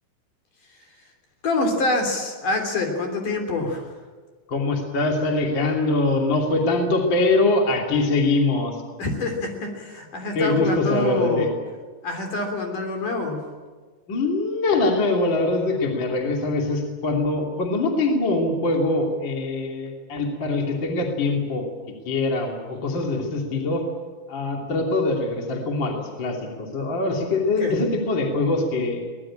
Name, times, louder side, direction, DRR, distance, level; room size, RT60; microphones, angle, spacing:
voice 1, 1.4-3.8 9.0-11.5 12.0-13.4 27.6-27.7, left 3 dB, 45° left, 4 dB, 4.4 m, -26 dB
voice 2, 4.5-8.8 10.3-11.5 14.1-21.6 22.0-23.8 24.3-29.1, left 2 dB, 30° left, 1 dB, 2.6 m, -23 dB
23.0 x 19.0 x 8.9 m, 1.4 s
omnidirectional pair, 5.4 m